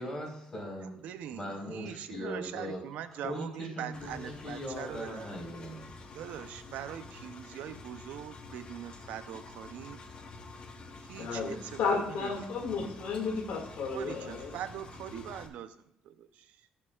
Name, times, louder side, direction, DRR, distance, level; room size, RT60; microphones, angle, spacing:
voice 1, 0.0-1.0 1.3-2.8 3.1-5.8, equal, 25° left, -1 dB, 4.3 m, -39 dB
voice 2, 1.0-5.4 6.1-10.0 11.0-12.3 13.9-16.6, right 10 dB, 85° right, 10 dB, 0.6 m, -42 dB
Engine, 3.9-15.5, left 3 dB, 45° left, 1.2 m, -48 dB
voice 3, 11.2-14.5, left 5 dB, 85° left, -2 dB, 2.1 m, -33 dB
17.0 x 6.8 x 2.4 m, 0.77 s
cardioid pair, 125°, 3 cm